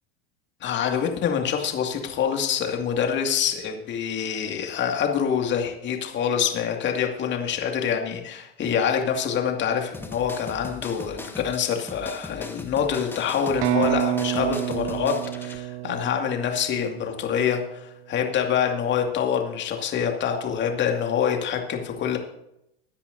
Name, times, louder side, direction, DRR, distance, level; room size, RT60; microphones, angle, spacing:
voice 1, 0.6-22.2, left 7 dB, 35° left, 3 dB, 2.3 m, -26 dB
sound 1, 9.9-15.6, left 2 dB, 5° left, 1.2 m, -40 dB
sound 2, 13.6-17.4, right 15 dB, 60° right, 0.6 m, -28 dB
22.0 x 10.0 x 2.7 m, 0.82 s
figure-of-eight pair, 85°, 32 cm